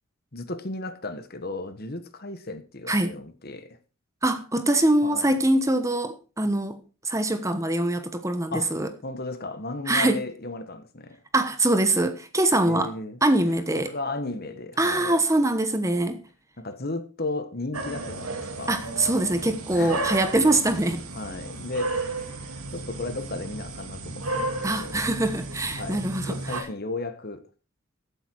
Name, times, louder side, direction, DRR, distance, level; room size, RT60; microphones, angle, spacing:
voice 1, 0.3-3.8 5.0-5.3 8.5-8.7 9.0-11.2 12.7-13.2 13.7-15.2 16.6-18.8 19.7-20.1 21.1-25.0 25.8-27.4, left 2 dB, 45° left, 1.5 m, -35 dB
voice 2, 2.9-3.2 4.2-6.8 7.0-8.9 9.9-10.2 11.3-12.9 13.2-13.9 14.8-16.2 18.7-21.0 24.6-26.7, right 1 dB, 15° right, 1.1 m, -23 dB
sound 1, 17.7-26.6, right 2 dB, 85° right, 2.3 m, -33 dB
15.0 x 8.4 x 4.7 m
head